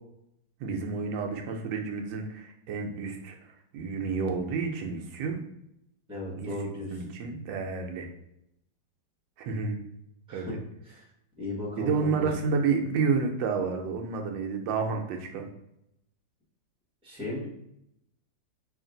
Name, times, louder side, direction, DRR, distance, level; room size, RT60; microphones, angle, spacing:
voice 1, 0.6-3.4 3.7-5.4 6.4-6.5 6.9-8.1 9.4-9.8 10.3-10.6 11.8-15.5, right 5 dB, 80° right, 3 dB, 1.3 m, -30 dB
voice 2, 6.1-7.0 10.3-10.5 10.8-11.1 11.4-12.3 17.0-17.5, left 1 dB, 5° right, -5 dB, 0.8 m, -35 dB
3.2 x 2.8 x 3.8 m, 0.80 s
omnidirectional pair, 2.0 m